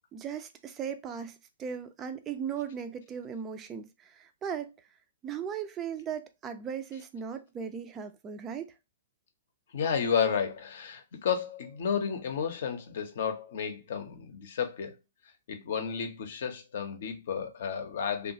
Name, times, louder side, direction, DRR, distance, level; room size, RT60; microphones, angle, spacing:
voice 1, 0.1-4.7 5.2-8.7, right 7 dB, 20° right, 0.3 m, -37 dB
voice 2, 9.7-14.9 15.5-18.3, left 7 dB, 55° left, 0.6 m, -32 dB
2.9 x 2.3 x 2.6 m
figure-of-eight pair, 120°, 0 cm